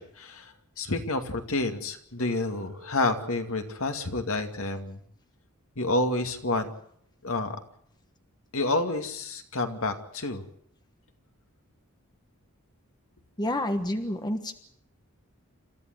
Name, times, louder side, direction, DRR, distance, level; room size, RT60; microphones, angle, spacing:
voice 1, 0.0-5.0 5.8-6.7 7.2-7.6 8.5-10.4, left 2 dB, 65° left, 5 dB, 2.4 m, -29 dB
Telephone, 2.2-4.2, right 1 dB, 55° right, 3.1 m, -50 dB
voice 2, 13.4-14.6, left 1 dB, 20° left, 7 dB, 1.3 m, -29 dB
28.5 x 14.0 x 8.0 m, 0.66 s
head